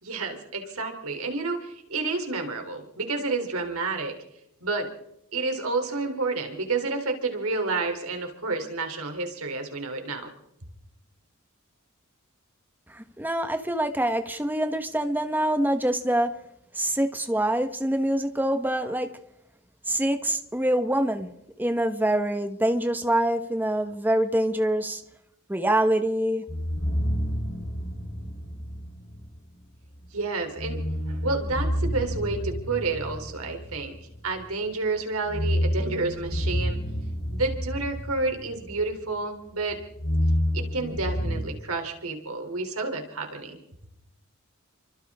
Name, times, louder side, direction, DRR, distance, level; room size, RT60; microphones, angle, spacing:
voice 1, 0.0-4.2 4.6-4.9 5.3-10.3 30.1-30.8 31.1-34.0 34.2-36.8 37.3-39.8 40.5-43.6, right 3 dB, 85° right, 3.5 m, -30 dB
voice 2, 12.9-16.3 16.7-19.1 19.9-21.3 21.6-25.0 25.5-26.4, right 1 dB, 10° right, 1.4 m, -25 dB
sound 1, 26.5-29.4 30.6-34.4 35.1-39.2 39.5-41.4, equal, 55° left, 3.8 m, -29 dB
29.5 x 25.0 x 3.7 m
head